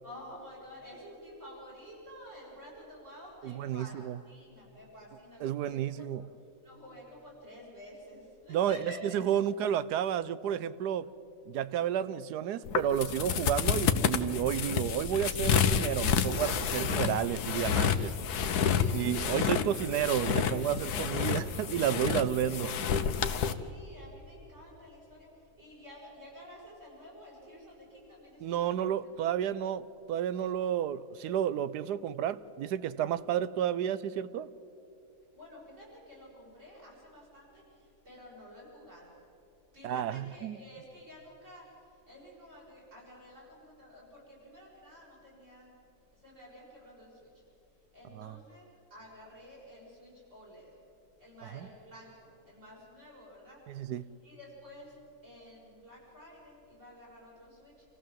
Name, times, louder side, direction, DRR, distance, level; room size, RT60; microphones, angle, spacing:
voice 1, 0.0-4.0 4.2-6.1 6.6-9.4 18.5-19.9 23.4-25.3 25.6-28.7 29.1-29.3 35.3-39.1 39.7-45.7 46.1-47.3 47.9-50.7 51.2-53.6 53.9-54.0 54.2-55.0 55.2-57.8, equal, 45° right, -6 dB, 7.8 m, -51 dB
voice 2, 3.4-4.2 5.4-6.2 8.5-8.8 9.1-11.1 11.5-18.1 18.9-22.7 28.4-34.5 39.8-40.6 48.1-48.4 51.5-51.7 53.7-54.1, right 10 dB, 85° right, 16 dB, 1.2 m, -31 dB
sound 1, 12.6-23.5, left 7 dB, 75° left, 1.4 m, -29 dB
27.5 x 15.0 x 7.6 m, 2.7 s
omnidirectional pair, 1.7 m